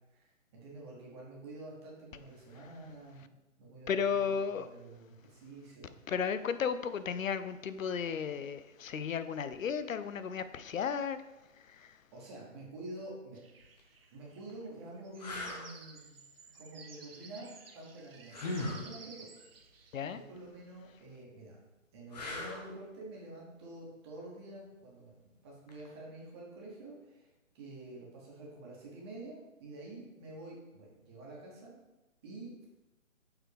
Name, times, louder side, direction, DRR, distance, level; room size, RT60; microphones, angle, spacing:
voice 1, 0.1-3.3 3.6-6.0 12.1-13.4 14.1-16.2 16.5-17.5 17.7-19.5 20.1-21.6 21.9-25.1 25.4-31.7 32.2-32.7, right 2 dB, 20° right, -4 dB, 1.3 m, -48 dB
voice 2, 3.9-4.7 6.1-11.2 11.7-11.9 19.9-20.2, left 7 dB, 75° left, 12 dB, 0.6 m, -34 dB
sound 1, 13.3-20.2, right 4 dB, 45° right, 0.8 m, -55 dB
sound 2, 13.6-13.8 14.5-14.6 15.2-15.7 18.3-18.9 22.1-22.7 25.7-25.9, left 2 dB, 30° left, 0.9 m, -38 dB
7.0 x 3.9 x 3.5 m, 0.99 s
hypercardioid pair, 155°, 40 cm